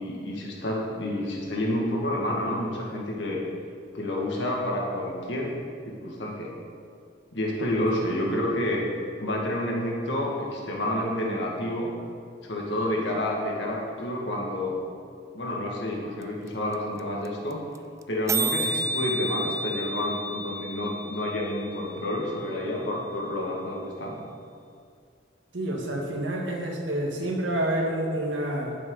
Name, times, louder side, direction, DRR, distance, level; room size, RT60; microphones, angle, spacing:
voice 1, 0.0-3.4 3.9-5.6 5.9-6.6 7.3-8.9 9.2-11.9 12.4-14.8 15.3-17.6 18.1-24.2, left 1 dB, 80° left, -2 dB, 2.1 m, -29 dB
sound 1, 16.2-16.3 16.5-16.6 16.7-17.0 17.2-17.3 17.5-17.8 18.0-18.1 18.3-22.3, right 1 dB, 15° right, 0.3 m, -31 dB
voice 2, 25.5-28.8, right 1 dB, 90° right, 0 dB, 1.8 m, -28 dB
11.0 x 9.1 x 4.0 m, 2.3 s
head